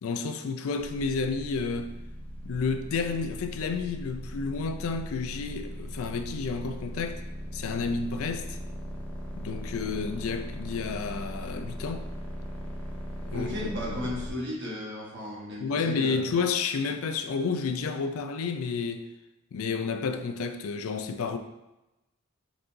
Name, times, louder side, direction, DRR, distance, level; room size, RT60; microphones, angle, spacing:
voice 1, 0.0-1.9 2.4-7.2 7.5-8.6 9.4-12.1 13.3-13.5 14.0-14.1 15.6-19.1 19.5-21.4, left 5 dB, 75° left, 0.4 m, -30 dB
sound 1, 0.8-14.3, equal, 10° left, 0.6 m, -39 dB
voice 2, 13.3-16.3, left 1 dB, 55° right, 1.3 m, -35 dB
4.8 x 3.8 x 2.6 m
head